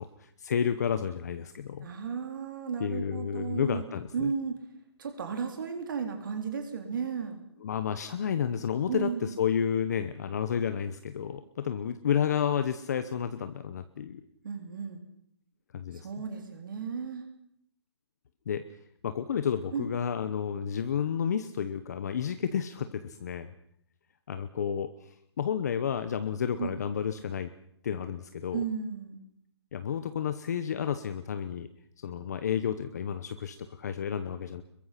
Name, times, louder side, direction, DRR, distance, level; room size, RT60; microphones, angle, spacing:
voice 1, 0.0-1.9 2.8-4.3 7.6-14.2 15.7-16.2 18.5-18.6 19.0-23.5 24.3-25.1 25.4-27.5 27.8-28.6 29.7-31.7 32.0-34.6, left 8 dB, 35° left, 10 dB, 1.0 m, -31 dB
voice 2, 1.8-3.8 4.1-4.6 5.0-7.4 8.9-9.3 14.4-15.0 15.9-17.2 19.7-19.9 26.6-26.8 28.5-29.2, right 6 dB, 45° right, 5 dB, 3.6 m, -34 dB
25.5 x 22.5 x 5.9 m, 0.70 s
hypercardioid pair, 170°, 15 cm